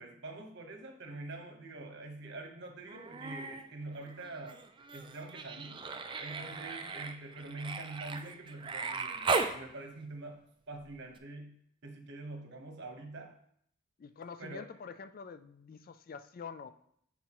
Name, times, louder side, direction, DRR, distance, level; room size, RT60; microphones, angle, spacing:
voice 1, 0.0-4.6 4.9-5.8 6.2-13.4 14.4-14.7, right 2 dB, 60° right, 3 dB, 1.1 m, -45 dB
Human voice, 2.9-3.6 4.0-9.6 11.2-11.3, right 4 dB, 25° right, 0.4 m, -37 dB
voice 2, 14.0-16.7, left 5 dB, 45° left, 12 dB, 0.3 m, -46 dB
10.0 x 4.2 x 3.0 m, 0.67 s
head